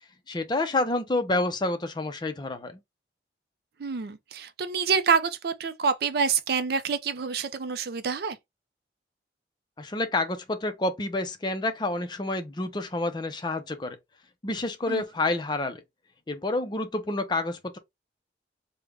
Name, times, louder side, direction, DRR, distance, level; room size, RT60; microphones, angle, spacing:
voice 1, 0.3-2.8 9.8-14.0 14.4-15.8 16.3-17.8, left 2 dB, 25° left, 0.5 m, -28 dB
voice 2, 3.8-8.4 14.9-15.0, right 6 dB, 55° right, 0.4 m, -27 dB
3.3 x 2.1 x 3.4 m
head